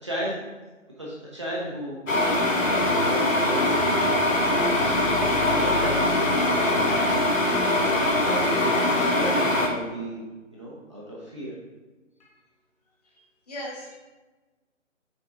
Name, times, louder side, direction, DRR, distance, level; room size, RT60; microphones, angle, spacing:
voice 1, 0.0-0.4 1.0-3.8 4.5-7.1 7.7-10.2 10.5-11.5, right 1 dB, 25° right, -6 dB, 0.7 m, -35 dB
sound 1, 2.1-9.7, left 1 dB, 80° left, 1.3 m, -22 dB
voice 2, 13.1-14.0, left 1 dB, 30° left, -4 dB, 1.7 m, -39 dB
6.0 x 4.6 x 3.6 m, 1.2 s
figure-of-eight pair, 150°, 38 cm